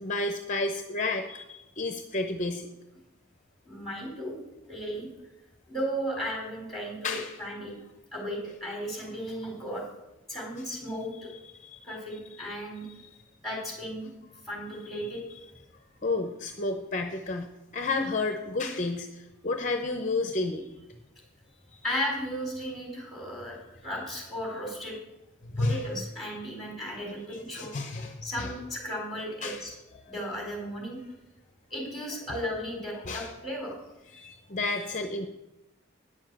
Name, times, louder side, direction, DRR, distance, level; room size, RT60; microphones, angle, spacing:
voice 1, 0.0-2.7 7.0-7.4 11.6-12.0 15.0-15.1 16.0-17.5 17.7-20.8 25.5-25.8 27.3-28.5 29.4-29.6 33.1-33.3 34.1-35.3, left 3 dB, 40° left, 5 dB, 0.7 m, -31 dB
voice 2, 3.6-4.4 4.7-5.1 5.7-7.7 8.1-9.8 10.3-11.3 11.8-12.9 13.4-14.1 14.4-15.2 21.8-23.6 23.8-24.9 25.6-27.7 28.2-29.7 30.1-31.0 31.7-33.8, equal, ahead, -2 dB, 4.0 m, -35 dB
10.0 x 7.2 x 7.6 m, 0.95 s
head